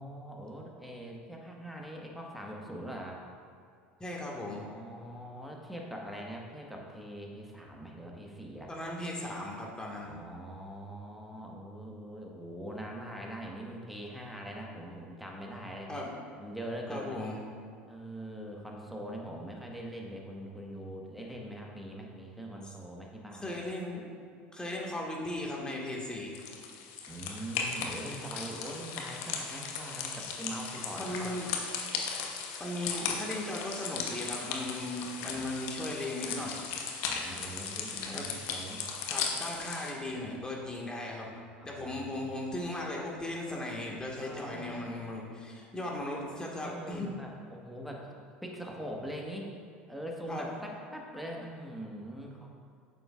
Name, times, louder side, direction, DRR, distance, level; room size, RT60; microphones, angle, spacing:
voice 1, 0.0-3.2 4.6-8.7 10.0-15.9 16.4-17.3 17.9-23.6 27.1-31.5 35.3-35.5 37.0-38.9 40.1-40.3 41.6-42.3 44.2-44.8 46.6-48.1 48.4-49.5 49.9-52.5, right 1 dB, ahead, -1 dB, 1.4 m, -42 dB
voice 2, 4.0-4.7 8.7-10.1 15.9-16.1 16.9-17.4 23.4-24.1 24.5-26.4 31.0-31.5 32.6-36.7 38.1-38.3 39.1-41.3 41.7-47.1 50.3-50.5, left 1 dB, 15° left, -2 dB, 1.7 m, -37 dB
sound 1, 26.3-39.9, left 6 dB, 65° left, 1.0 m, -37 dB
9.1 x 6.9 x 2.5 m, 2.4 s
hypercardioid pair, 75°, 6 cm